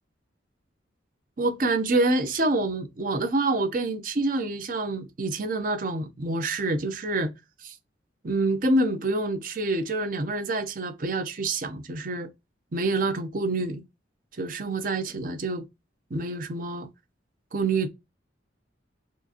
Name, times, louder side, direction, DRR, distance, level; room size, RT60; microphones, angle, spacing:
voice 1, 1.4-7.3 7.6-7.8 8.2-12.3 12.7-13.8 14.4-15.6 16.1-16.9 17.5-17.9, right 2 dB, 45° right, 0.6 m, -27 dB
4.5 x 2.4 x 2.8 m
head